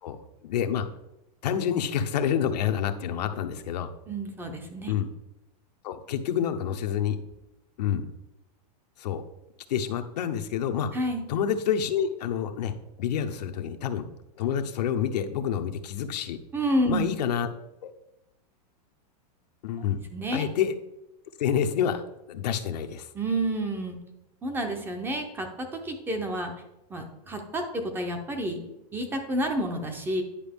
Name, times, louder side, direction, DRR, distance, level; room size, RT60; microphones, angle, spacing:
voice 1, 0.0-0.9 1.4-3.9 4.9-5.1 5.8-7.2 7.8-8.1 9.0-9.2 9.7-10.9 11.3-12.7 13.0-14.0 14.4-16.4 16.9-17.5 17.8-17.9 19.6-20.0 20.3-20.7 21.4-22.0 22.3-23.1, left 8 dB, 80° left, 7 dB, 0.8 m, -28 dB
voice 2, 4.1-4.9 10.9-11.2 16.5-17.1 20.1-20.5 23.1-24.0 24.4-26.5 26.9-30.2, right 1 dB, 10° right, 5 dB, 0.6 m, -29 dB
9.9 x 5.0 x 3.5 m, 0.89 s
supercardioid pair, 165°, 21 cm